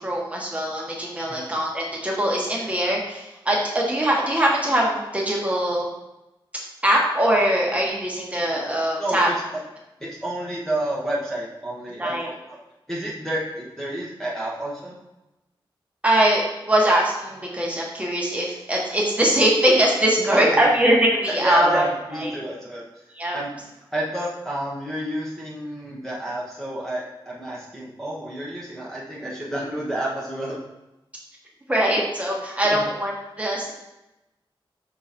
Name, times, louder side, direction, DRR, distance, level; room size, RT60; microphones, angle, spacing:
voice 1, 0.0-5.9 6.8-9.3 12.0-12.3 16.0-21.9 22.1-22.4 23.1-23.4 31.7-33.7, right 1 dB, 15° right, -3 dB, 1.3 m, -22 dB
voice 2, 9.0-9.3 10.0-12.6 12.9-14.9 20.2-20.7 21.3-22.8 23.3-23.5 23.9-30.6 32.6-32.8, right 1 dB, 5° left, -6 dB, 1.1 m, -30 dB
6.5 x 3.9 x 4.3 m, 0.97 s
wide cardioid pair, 140°, 9 cm